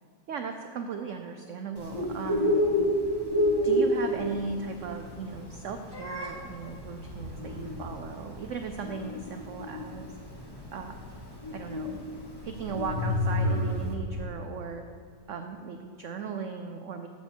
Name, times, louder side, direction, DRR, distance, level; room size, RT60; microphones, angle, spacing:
voice 1, 0.3-2.6 3.6-10.1 10.7-11.0 11.5-12.0 12.4-14.8 15.3-17.1, right 5 dB, 70° right, 6 dB, 0.7 m, -37 dB
Bird, 1.8-13.9, equal, 15° left, 1.1 m, -30 dB
sound 1, 6.7-8.3 11.4-11.5 12.4-14.2, left 1 dB, 85° right, 2.0 m, -32 dB
14.0 x 7.4 x 4.5 m, 2.1 s
omnidirectional pair, 1.9 m